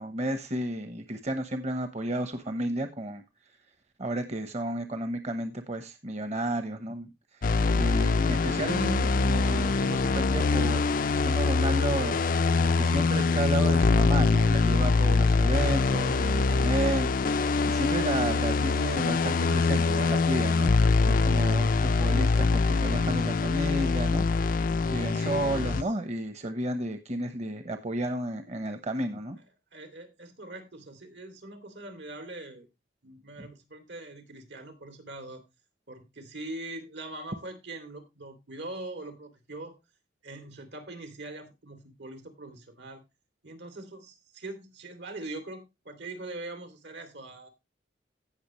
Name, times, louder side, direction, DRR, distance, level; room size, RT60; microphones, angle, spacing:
voice 1, 0.0-3.2 4.0-7.1 7.4-12.2 12.6-17.1 17.6-20.8 21.0-29.4, right 1 dB, 40° right, 1.0 m, -32 dB
sound 1, 7.4-25.8, left 4 dB, 50° left, 0.5 m, -24 dB
voice 2, 25.1-25.9 29.7-32.7 33.0-35.4 35.9-39.8 40.2-43.0 43.4-47.5, right 2 dB, 80° right, 2.7 m, -42 dB
17.0 x 6.0 x 3.0 m
head